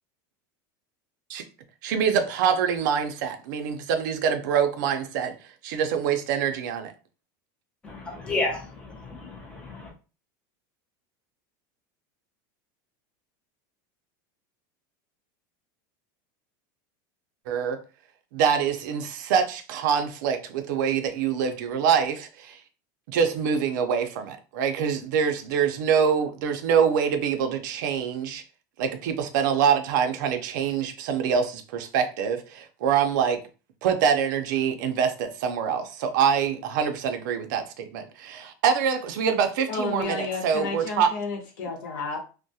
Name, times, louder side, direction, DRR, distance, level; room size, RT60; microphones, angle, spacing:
voice 1, 1.8-5.3 5.6-6.9 17.5-17.8 18.3-22.6 23.1-28.4 28.8-33.4 33.8-41.1, right 7 dB, 65° right, 0.4 m, -25 dB
voice 2, 7.8-9.9, left 2 dB, 10° left, 0.5 m, -32 dB
voice 3, 39.7-42.2, left 3 dB, 75° left, 0.9 m, -31 dB
2.3 x 2.0 x 2.6 m
supercardioid pair, 180°, 11 cm